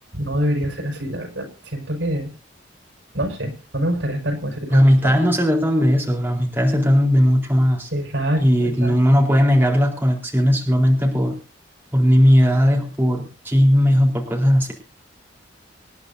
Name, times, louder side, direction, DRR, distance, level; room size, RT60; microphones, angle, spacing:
voice 1, 0.1-2.3 3.1-5.2 7.9-9.2, right 1 dB, 80° right, 3 dB, 5.5 m, -26 dB
voice 2, 4.7-7.9 8.4-11.4 11.9-14.7, equal, 10° right, 0 dB, 4.1 m, -17 dB
26.5 x 10.5 x 2.7 m, 0.36 s
head